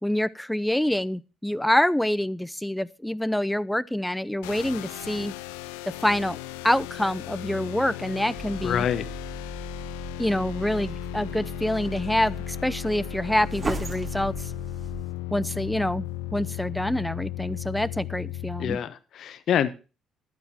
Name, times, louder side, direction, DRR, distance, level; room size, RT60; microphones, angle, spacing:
voice 1, 0.0-5.3 5.9-6.4 6.6-8.9 10.2-14.3 15.3-18.8, left 1 dB, 5° left, 0.7 m, -26 dB
sound 1, 4.4-18.8, left 15 dB, 90° left, 0.5 m, -36 dB
sound 2, 8.3-15.1, right 2 dB, 35° right, 2.3 m, -37 dB
voice 2, 8.6-9.1 18.6-19.7, left 9 dB, 65° left, 1.1 m, -26 dB
12.0 x 9.1 x 4.4 m
hypercardioid pair, 55°, 0 cm